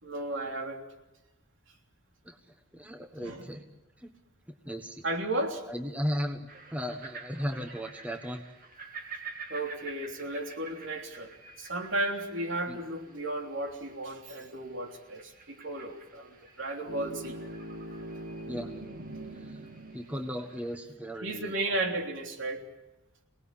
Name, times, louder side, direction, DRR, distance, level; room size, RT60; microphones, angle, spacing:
voice 1, 0.0-0.8 3.2-3.4 5.0-5.6 9.5-11.3 11.6-17.4 21.2-22.6, right 2 dB, 65° right, 2 dB, 3.3 m, -34 dB
voice 2, 2.7-3.6 4.0-4.1 4.6-5.0 5.7-8.4 12.7-12.8 18.5-18.7 19.9-21.8, equal, 5° right, 5 dB, 1.2 m, -36 dB
sound 1, 6.5-20.8, right 4 dB, 40° right, 2.3 m, -49 dB
sound 2, 16.9-20.8, right 1 dB, 85° right, 2.7 m, -42 dB
27.5 x 19.0 x 7.5 m, 1.0 s
head